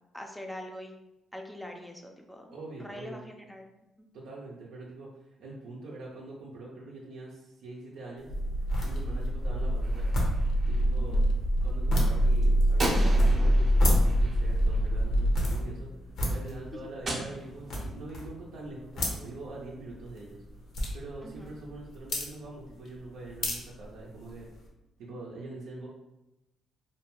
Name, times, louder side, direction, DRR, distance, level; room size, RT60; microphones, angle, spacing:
voice 1, 0.1-0.9 1.3-2.5 2.8-3.6 4.0-4.1 11.0-11.2 21.2-21.5, left 1 dB, 5° left, 2 dB, 0.4 m, -43 dB
voice 2, 2.5-3.3 4.1-5.1 5.4-8.3 8.8-10.1 10.6-11.2 11.6-15.9 16.3-20.7 20.9-24.5 25.0-25.9, right 2 dB, 80° right, -4 dB, 0.5 m, -44 dB
sound 1, 8.2-24.7, left 1 dB, 65° left, 0.7 m, -37 dB
sound 2, 8.3-15.5, equal, 90° left, 0.3 m, -25 dB
Gunshot gunfire, 9.8-10.8 12.8-15.2 17.1-18.0, right 1 dB, 40° right, 0.6 m, -37 dB
2.6 x 2.2 x 2.9 m, 0.94 s
cardioid pair, 90°, 0 cm